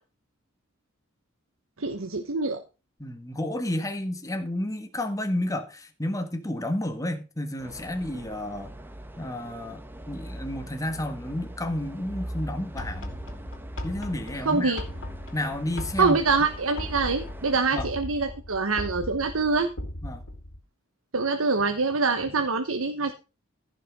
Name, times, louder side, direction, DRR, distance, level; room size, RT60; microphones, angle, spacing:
voice 1, 1.8-2.6 14.4-14.8 16.0-19.7 21.1-23.1, right 4 dB, 85° right, 1.1 m, -25 dB
voice 2, 3.0-8.7 9.2-13.2 13.8-14.8 15.3-16.2 17.7-17.9 20.0-20.2, left 1 dB, 15° left, 1.6 m, -31 dB
sound 1, 7.6-17.7, right 1 dB, 10° right, 1.1 m, -41 dB
sound 2, 12.8-20.6, left 1 dB, 65° left, 2.7 m, -38 dB
15.0 x 6.0 x 5.2 m
head